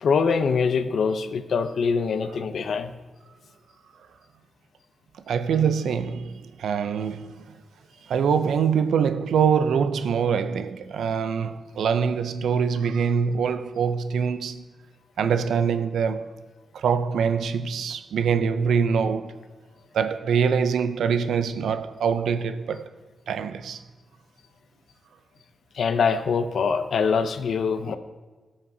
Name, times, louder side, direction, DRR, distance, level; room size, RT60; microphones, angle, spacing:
voice 1, 0.0-2.9 25.7-28.0, left 5 dB, 70° left, 0.5 m, -24 dB
voice 2, 5.3-7.6 8.1-14.6 15.2-16.3 16.7-19.4 19.9-22.9 23.3-23.8, right 6 dB, 85° right, 0.4 m, -24 dB
13.5 x 5.8 x 2.7 m
cardioid pair, 80°, 0 cm